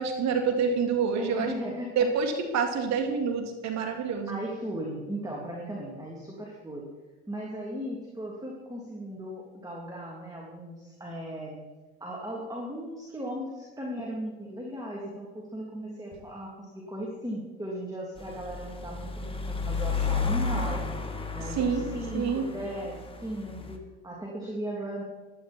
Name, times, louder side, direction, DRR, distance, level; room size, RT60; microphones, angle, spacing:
voice 1, 0.0-1.5 2.0-4.4 21.6-21.9 22.1-22.4, right 6 dB, 60° right, 4 dB, 2.8 m, -27 dB
voice 2, 1.1-1.9 4.3-6.8 7.3-11.6 12.0-20.8 21.3-25.0, equal, 10° right, -2 dB, 3.3 m, -37 dB
sound 1, 18.2-23.8, left 4 dB, 15° left, 2.0 m, -32 dB
16.0 x 11.5 x 4.6 m, 1.2 s
supercardioid pair, 85°, 31 cm